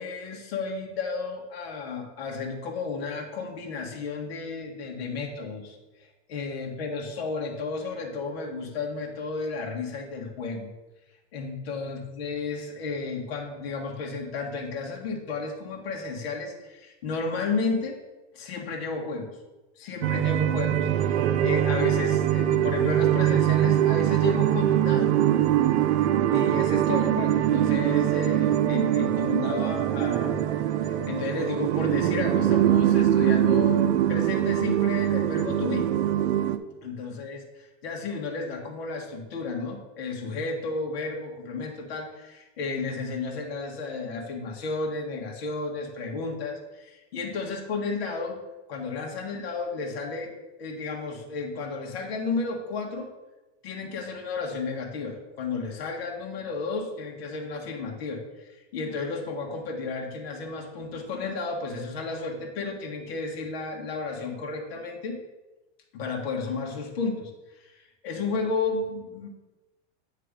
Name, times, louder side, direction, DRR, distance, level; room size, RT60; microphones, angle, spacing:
voice 1, 0.0-5.8 6.3-10.7 11.3-18.0 18.3-19.4 19.8-25.1 26.3-30.5 30.8-35.9 36.8-48.4 48.7-50.3 50.6-53.1 53.6-65.2 65.9-67.8 68.0-69.3, left 4 dB, 65° left, 1 dB, 1.5 m, -33 dB
sound 1, 20.0-36.6, right 11 dB, 80° right, 0.6 m, -23 dB
8.5 x 3.3 x 5.0 m, 1.1 s
supercardioid pair, 175°, 33 cm